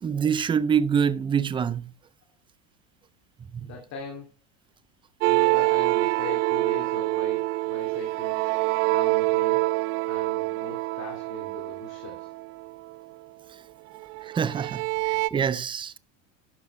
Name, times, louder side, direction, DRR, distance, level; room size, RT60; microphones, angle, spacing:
voice 1, 0.0-1.9 3.5-3.7 14.2-16.0, right 7 dB, 15° right, 0.4 m, -26 dB
voice 2, 3.6-4.3 5.2-8.5 8.9-9.6 10.1-12.3, left 4 dB, 45° left, 2.5 m, -41 dB
sound 1, 5.2-12.9 13.9-15.3, right 23 dB, 70° right, 0.6 m, -26 dB
12.0 x 7.1 x 3.2 m
supercardioid pair, 125°, 38 cm